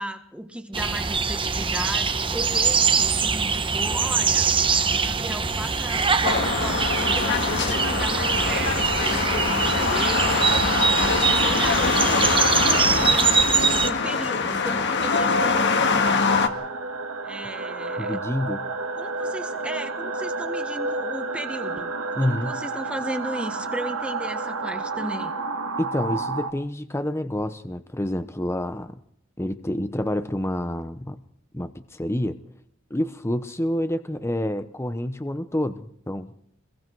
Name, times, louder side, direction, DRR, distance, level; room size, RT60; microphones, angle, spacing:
voice 1, 0.0-10.3 10.8-12.3 12.6-16.3 17.2-18.2 19.0-21.9 22.2-25.3, right 1 dB, 5° right, 6 dB, 1.6 m, -35 dB
sound 1, 0.7-13.9, right 5 dB, 25° right, 1.1 m, -23 dB
sound 2, 6.2-16.5, left 4 dB, 55° left, 1.9 m, -23 dB
sound 3, 16.3-26.5, right 3 dB, 80° right, 1.9 m, -30 dB
voice 2, 18.0-18.6 22.1-22.5 25.8-29.0 29.4-31.2 31.5-32.4 32.9-36.3, left 1 dB, 15° left, 10 dB, 0.8 m, -28 dB
27.5 x 22.0 x 4.7 m, 0.70 s
head